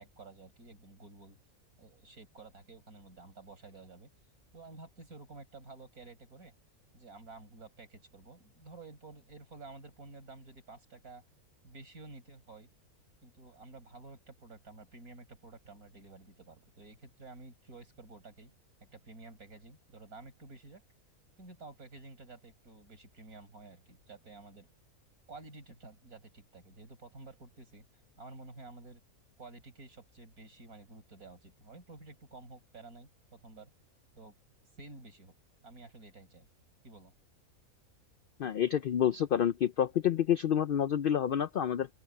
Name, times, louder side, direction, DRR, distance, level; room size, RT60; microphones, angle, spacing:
voice 1, 0.0-1.4 1.8-4.1 4.5-6.5 6.9-11.2 11.6-12.7 13.2-18.5 18.8-20.8 21.4-24.7 25.3-29.0 29.4-33.7 34.2-34.4 34.8-35.3 35.6-36.5 36.8-37.1, right 3 dB, 80° right, 5.6 m, -51 dB
voice 2, 38.4-41.9, left 9 dB, 80° left, 0.4 m, -28 dB
open air
omnidirectional pair, 1.5 m